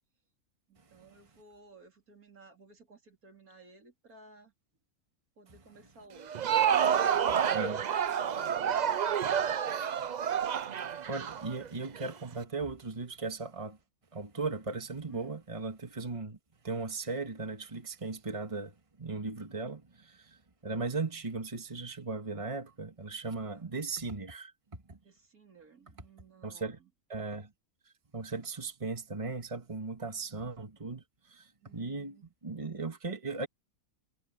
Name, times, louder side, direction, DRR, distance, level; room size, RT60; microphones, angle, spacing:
voice 1, 0.7-4.5 5.4-10.0 15.1-15.4 23.5-23.7 25.0-26.9 30.0-30.2 31.6-32.3, right 3 dB, 85° right, 4.0 m, -56 dB
Crowd, 6.2-12.1, right 8 dB, 60° right, 0.4 m, -29 dB
voice 2, 11.1-13.8 14.1-16.4 16.6-24.5 24.9-25.0 26.4-26.8 27.1-27.5 28.1-33.5, right 3 dB, 25° right, 1.9 m, -37 dB
omnidirectional pair, 1.5 m